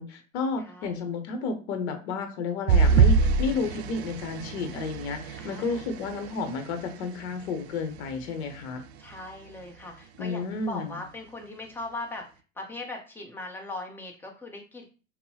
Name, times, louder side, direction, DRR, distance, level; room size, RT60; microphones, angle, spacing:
voice 1, 0.0-8.8 10.2-11.0, left 4 dB, 55° left, 6 dB, 0.9 m, -32 dB
voice 2, 0.6-1.1 5.4-5.8 9.0-12.3 12.6-14.9, left 2 dB, 5° left, 1 dB, 0.8 m, -39 dB
sound 1, 2.7-7.4 7.9-8.2 8.5-8.6, right 5 dB, 55° right, 0.5 m, -25 dB
5.3 x 2.1 x 2.8 m, 0.34 s
figure-of-eight pair, 85°, 40 cm